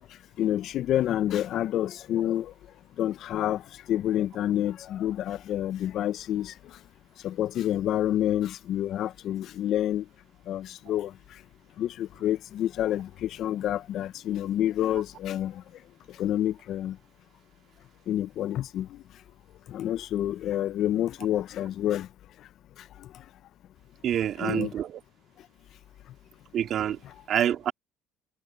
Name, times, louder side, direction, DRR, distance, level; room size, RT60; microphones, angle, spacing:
voice 1, 0.4-2.5 3.0-3.6 3.9-6.5 7.2-10.1 10.5-11.1 11.8-15.6 16.2-17.0 18.1-19.0 19.7-22.1 24.4-24.7 27.0-27.1, left 12 dB, 65° left, 0.9 m, -28 dB
voice 2, 24.0-25.0 26.5-27.0 27.3-27.7, right 10 dB, 60° right, 2.2 m, -27 dB
supercardioid pair, 75°, 0 cm